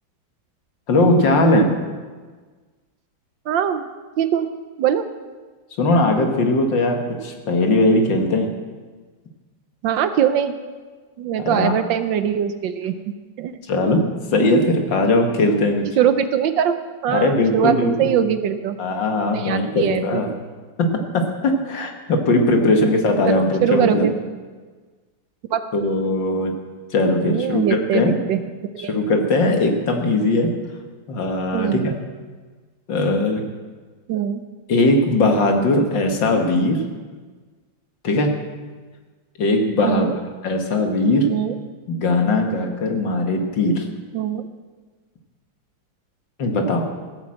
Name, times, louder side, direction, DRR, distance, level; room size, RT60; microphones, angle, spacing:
voice 1, 0.9-1.8 5.8-8.5 11.4-11.8 13.7-15.9 17.1-18.2 18.8-20.3 20.8-24.1 25.7-26.5 26.9-28.2 28.8-30.5 31.1-31.9 32.9-33.4 34.7-36.8 38.0-38.3 39.4-40.1 40.4-41.3 41.9-43.9 46.4-46.9, left 2 dB, 65° left, 3 dB, 2.2 m, -19 dB
voice 2, 3.5-3.8 4.2-4.5 4.8-5.0 9.8-10.5 11.2-12.9 13.4-13.5 16.0-16.7 17.0-18.8 19.3-20.2 22.8-23.0 23.3-24.1 25.5-25.6 27.2-28.4 28.7-28.9 31.5-31.9 34.1-34.4 39.8-40.1 41.3-41.5 44.1-44.4, right 9 dB, 70° right, 10 dB, 1.3 m, -21 dB
15.5 x 8.0 x 7.8 m, 1.4 s
omnidirectional pair, 2.2 m